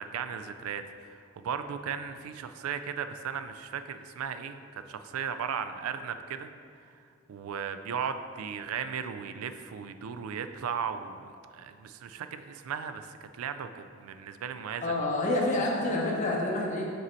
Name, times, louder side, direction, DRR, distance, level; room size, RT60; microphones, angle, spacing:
voice 1, 0.0-6.5 6.9-7.0 7.3-15.0, right 7 dB, 85° right, 9 dB, 0.3 m, -36 dB
voice 2, 14.8-16.9, left 2 dB, 35° left, -2 dB, 0.7 m, -28 dB
5.3 x 4.0 x 4.4 m, 2.4 s
head